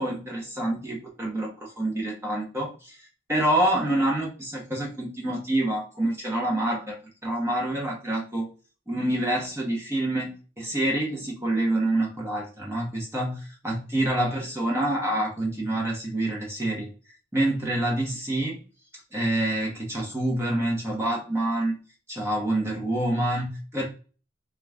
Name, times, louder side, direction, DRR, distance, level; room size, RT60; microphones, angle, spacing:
voice 1, 0.0-3.0 3.3-7.0 7.2-8.5 8.9-16.9 17.3-18.6 19.1-21.8 22.1-23.8, right 1 dB, 15° right, -2 dB, 1.0 m, -27 dB
3.8 x 2.4 x 3.5 m, 0.36 s
head